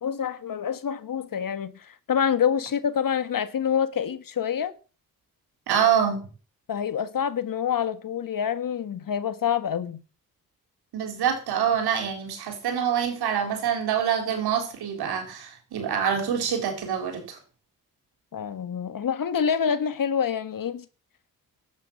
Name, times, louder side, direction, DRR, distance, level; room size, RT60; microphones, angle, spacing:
voice 1, 0.0-4.7 6.7-10.0 18.3-20.8, left 8 dB, 60° left, 1.6 m, -27 dB
voice 2, 5.7-6.2 10.9-17.4, right 8 dB, 80° right, 4.0 m, -26 dB
12.0 x 9.1 x 7.3 m
supercardioid pair, 50°, 38 cm